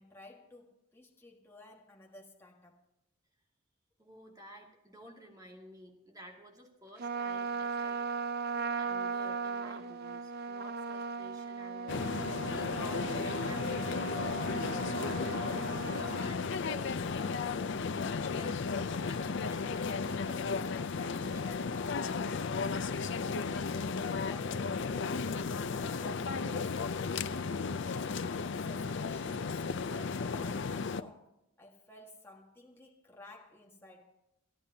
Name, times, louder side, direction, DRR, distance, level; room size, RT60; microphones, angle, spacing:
voice 1, 0.0-2.8 23.0-27.1 27.8-31.3 31.6-34.1, left 2 dB, 10° left, -1 dB, 1.6 m, -54 dB
voice 2, 4.0-8.1 8.5-17.7 18.2-22.0, equal, 15° right, 0 dB, 2.3 m, -52 dB
Trumpet, 7.0-16.3, right 4 dB, 45° right, 0.6 m, -37 dB
sound 1, 11.9-31.0, left 5 dB, 50° left, 0.5 m, -34 dB
27.5 x 10.0 x 2.8 m, 0.87 s
head